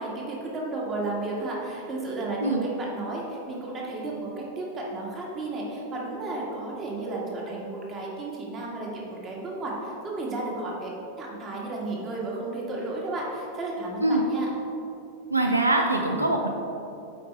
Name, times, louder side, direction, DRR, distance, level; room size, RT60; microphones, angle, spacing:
voice 1, 0.0-10.9 11.2-14.5, right 2 dB, 30° right, -3 dB, 1.7 m, -33 dB
voice 2, 15.3-16.5, right 2 dB, 85° right, 3 dB, 0.5 m, -23 dB
8.4 x 4.8 x 4.3 m, 2.8 s
figure-of-eight pair, 90°, 0 cm